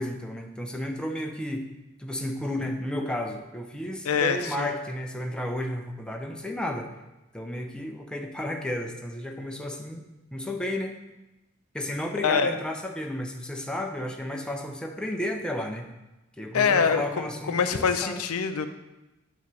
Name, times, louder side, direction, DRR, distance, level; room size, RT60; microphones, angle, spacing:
voice 1, 0.0-1.6 2.0-6.9 7.3-11.0 11.7-15.9 16.4-18.2, left 1 dB, 5° left, 2 dB, 0.6 m, -32 dB
voice 2, 4.0-4.7 12.2-12.5 16.5-18.7, left 6 dB, 80° left, 9 dB, 0.5 m, -24 dB
8.7 x 3.1 x 6.0 m, 0.99 s
head